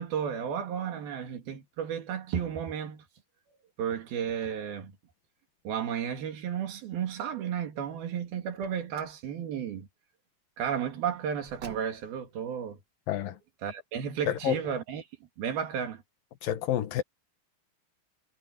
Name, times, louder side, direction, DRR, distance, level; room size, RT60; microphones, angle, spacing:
voice 1, 0.0-3.0 3.8-5.0 5.6-9.9 10.6-12.8 13.6-15.0 15.4-16.0, right 8 dB, 85° right, 4.1 m, -33 dB
Car, 8.5-9.3 11.4-12.3, right 7 dB, 50° right, 1.4 m, -49 dB
voice 2, 13.1-13.4 14.3-14.7 16.4-17.0, left 11 dB, 75° left, 2.9 m, -29 dB
omnidirectional pair, 4.2 m